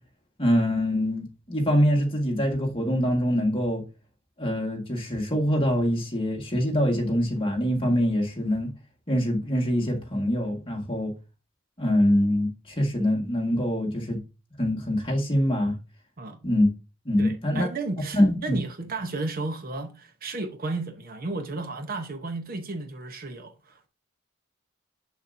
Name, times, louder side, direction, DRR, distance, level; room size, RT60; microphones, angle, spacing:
voice 1, 0.4-3.8 4.4-8.7 9.1-11.1 11.8-14.2 14.6-15.8 16.4-16.7 17.0-17.7 18.1-18.6, equal, 30° left, 1.7 m, -24 dB
voice 2, 17.2-23.9, right 3 dB, 50° right, 0.8 m, -33 dB
6.8 x 6.7 x 2.6 m
head